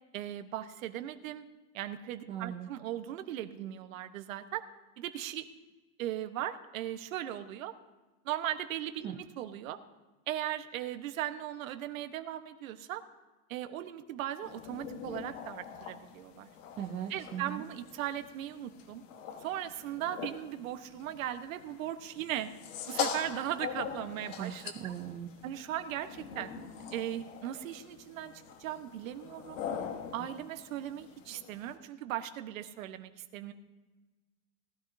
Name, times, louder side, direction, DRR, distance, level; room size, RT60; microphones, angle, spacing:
voice 1, 0.1-1.4 1.7-4.6 5.0-5.4 6.0-7.7 8.2-9.8 10.3-13.0 13.5-16.5 17.1-19.0 19.4-22.5 22.9-24.9 25.4-26.5 26.9-28.3 28.6-29.6 30.1-33.5, right 12 dB, 85° right, 9 dB, 1.2 m, -38 dB
voice 2, 2.3-2.7 9.0-9.2 16.8-17.6 24.4-25.3, right 9 dB, 20° right, 1 dB, 0.4 m, -39 dB
sound 1, 14.4-31.8, left 7 dB, 70° left, 1.5 m, -43 dB
19.0 x 13.0 x 2.7 m, 1.2 s
supercardioid pair, 170°, 39 cm